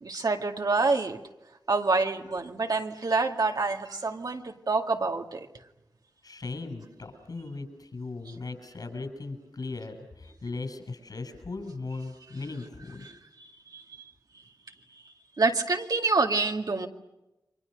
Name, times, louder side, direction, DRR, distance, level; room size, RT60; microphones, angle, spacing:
voice 1, 0.0-1.2 1.7-5.5 13.0-13.1 13.4-13.8 15.4-16.9, right 3 dB, 65° right, 3 dB, 2.1 m, -27 dB
voice 2, 6.2-13.1, left 3 dB, 65° left, 7 dB, 7.1 m, -38 dB
30.0 x 25.0 x 6.6 m, 0.95 s
wide cardioid pair, 65°, 7 cm